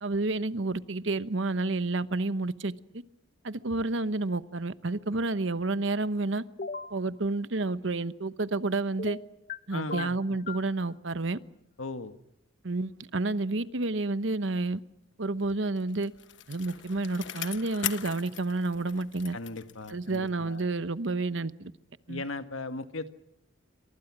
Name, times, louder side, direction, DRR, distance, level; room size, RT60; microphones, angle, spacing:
voice 1, 0.0-2.7 3.4-6.4 6.9-9.2 9.7-11.4 12.6-14.8 15.2-16.1 16.5-19.4 19.9-21.7 22.1-22.2, right 2 dB, 65° right, 14 dB, 1.0 m, -30 dB
sound 1, 6.6-6.9 9.0-9.6 9.9-10.7, left 4 dB, 45° left, 0.9 m, -37 dB
voice 2, 9.7-10.4 11.8-12.1 19.3-20.7 22.1-23.1, left 3 dB, 90° left, 9 dB, 1.7 m, -38 dB
Bicycle, 15.5-20.4 20.8-20.9, left 11 dB, 60° left, 1.2 m, -40 dB
28.5 x 24.5 x 6.2 m, 0.74 s
head